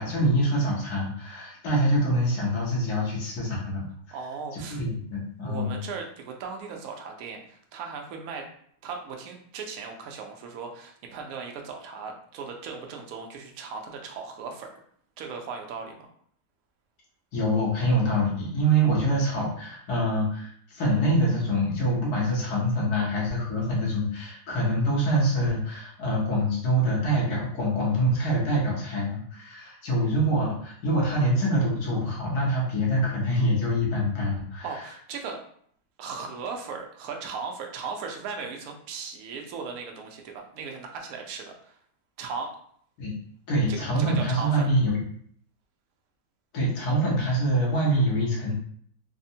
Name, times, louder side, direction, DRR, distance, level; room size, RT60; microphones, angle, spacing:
voice 1, 0.0-3.8 4.5-5.8 17.3-34.8 43.0-43.1 43.5-45.0 46.5-48.5, right 1 dB, 85° left, -4 dB, 1.4 m, -25 dB
voice 2, 4.1-4.8 5.4-8.4 8.8-14.7 15.2-16.1 34.6-35.4 36.0-41.8 42.2-42.5 43.7-44.7, right 5 dB, 70° right, 2 dB, 1.0 m, -37 dB
3.5 x 2.0 x 2.7 m, 0.62 s
omnidirectional pair, 1.6 m